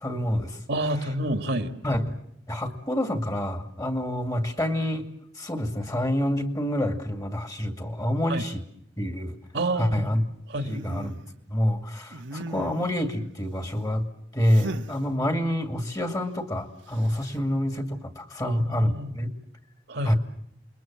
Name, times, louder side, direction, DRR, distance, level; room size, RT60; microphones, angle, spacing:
voice 1, 0.0-0.6 1.8-2.2 2.5-5.1 5.4-8.7 9.0-9.4 9.8-10.2 10.6-11.2 11.5-14.1 14.3-19.3 20.0-20.2, equal, 20° left, 6 dB, 2.3 m, -27 dB
voice 2, 0.7-1.7 8.3-8.4 9.5-10.1 10.5-10.7 18.4-19.1 19.9-20.2, right 1 dB, 65° right, 7 dB, 1.9 m, -28 dB
sound 1, 10.7-11.2 12.1-13.0 14.5-15.0 16.9-17.4, right 2 dB, 90° right, 1.5 m, -37 dB
28.5 x 22.0 x 7.5 m, 0.73 s
head